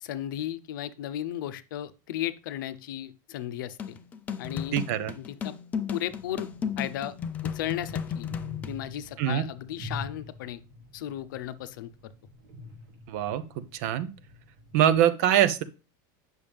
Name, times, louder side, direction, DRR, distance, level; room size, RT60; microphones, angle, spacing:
voice 1, 0.0-4.0 4.4-4.8 5.2-5.5 5.9-6.5 6.8-7.1 7.4-8.3 8.7-10.6 10.9-12.1, left 12 dB, 75° left, 13 dB, 0.7 m, -35 dB
sound 1, 3.8-8.8, left 7 dB, 15° left, 0.4 m, -34 dB
voice 2, 4.7-5.1 9.2-9.4 13.1-14.1 14.7-15.6, right 11 dB, 50° right, 12 dB, 0.7 m, -24 dB
sound 2, 6.0-14.9, left 2 dB, 65° right, 2.3 m, -46 dB
8.8 x 6.3 x 3.4 m, 0.32 s
supercardioid pair, 180°, 11 cm